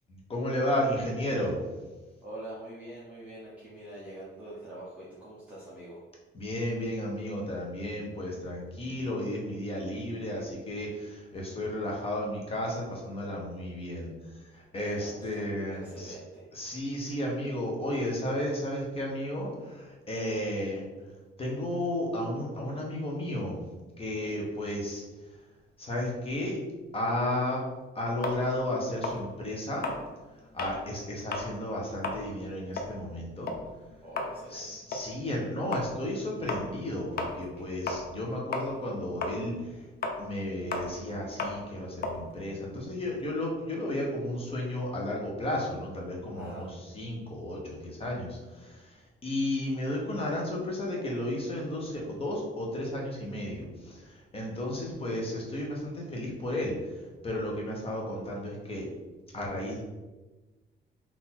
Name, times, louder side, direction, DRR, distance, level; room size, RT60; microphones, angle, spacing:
voice 1, 0.1-1.6 6.3-14.1 14.5-16.1 16.5-20.8 21.4-23.6 24.0-25.0 25.8-26.6 26.9-27.6 27.9-29.9 30.5-33.5 34.5-39.8 40.2-46.7 46.9-56.7 57.2-58.9 59.3-59.8, left 1 dB, 30° left, -2 dB, 1.0 m, -33 dB
voice 2, 2.2-6.0 14.7-16.5 24.0-24.4 34.0-34.8 46.3-46.7, right 1 dB, 5° right, -9 dB, 0.8 m, -45 dB
sound 1, 28.2-30.8 31.2-31.5 31.9-38.3 38.5-43.3, left 3 dB, 50° left, 0.6 m, -35 dB
3.9 x 2.8 x 4.3 m, 1.2 s
cardioid pair, 160°, 21 cm